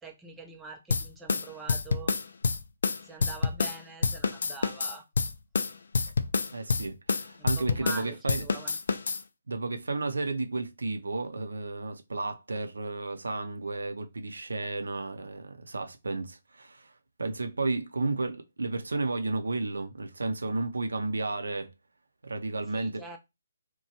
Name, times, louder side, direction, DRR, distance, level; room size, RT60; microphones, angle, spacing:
voice 1, 0.0-2.1 3.0-5.0 7.4-8.8 22.7-23.2, right 4 dB, 5° right, 0.5 m, -44 dB
sound 1, 0.9-8.0 8.3-9.2, left 5 dB, 60° left, 0.3 m, -28 dB
voice 2, 6.5-8.4 9.5-16.9 17.2-21.7 22.2-23.1, right 3 dB, 75° right, 0.5 m, -32 dB
2.9 x 2.2 x 2.8 m
figure-of-eight pair, 140°, 0 cm